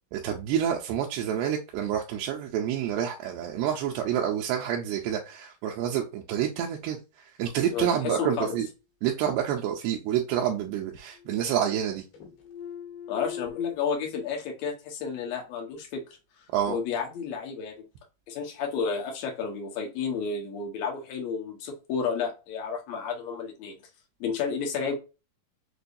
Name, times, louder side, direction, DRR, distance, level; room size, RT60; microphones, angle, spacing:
voice 1, 0.1-7.0 7.4-8.7 9.0-12.0 16.5-16.8, right 9 dB, 85° right, 2.5 m, -28 dB
voice 2, 7.7-8.6 13.1-16.0 16.7-17.8 18.3-23.7 24.2-24.9, left 6 dB, 65° left, 1.8 m, -31 dB
sound 1, 10.6-10.7 10.9-11.9 12.1-13.8, left 8 dB, 85° left, 3.2 m, -42 dB
6.7 x 2.3 x 2.6 m
omnidirectional pair, 4.5 m